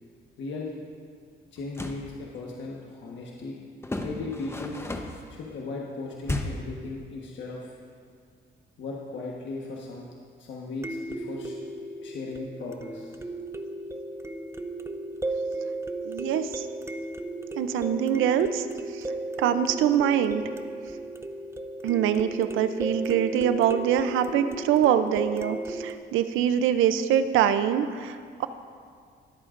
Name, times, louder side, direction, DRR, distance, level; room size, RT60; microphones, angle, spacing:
voice 1, 0.4-0.7 1.5-3.6 4.0-4.9 5.3-7.8 8.8-10.1 10.4-11.6 12.0-13.2, left 3 dB, 70° left, -3 dB, 1.3 m, -37 dB
sound 1, 1.6-2.1 3.8-5.3 6.2-6.7, left 2 dB, 10° left, 0.9 m, -33 dB
sound 2, 6.1-6.2 10.8-26.0, right 2 dB, 15° right, 0.6 m, -35 dB
voice 2, 16.0-16.7 17.6-18.7 18.9-19.1 19.4-20.4 21.8-28.5, right 9 dB, 85° right, 11 dB, 0.6 m, -24 dB
21.0 x 8.5 x 2.5 m, 2.1 s
cardioid pair, 90°, 20 cm